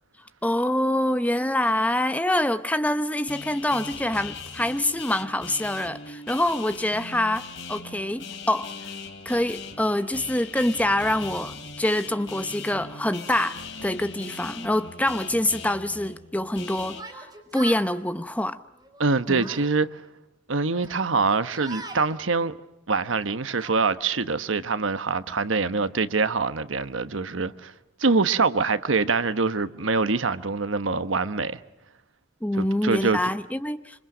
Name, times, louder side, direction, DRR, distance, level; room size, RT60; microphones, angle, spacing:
voice 1, 0.4-8.7 9.2-17.3 17.5-18.6 19.3-19.5 32.4-34.1, left 1 dB, 10° left, 0.8 m, -25 dB
sound 1, 3.3-17.0, left 4 dB, 70° left, 2.8 m, -40 dB
Yell, 16.9-17.9 18.8-19.7 20.7-22.1 22.9-23.8, right 3 dB, 20° right, 4.3 m, -42 dB
voice 2, 19.0-20.0 20.5-22.5 22.9-27.7 28.0-31.6 32.6-33.2, right 4 dB, 90° right, 1.2 m, -24 dB
26.5 x 26.5 x 6.2 m
head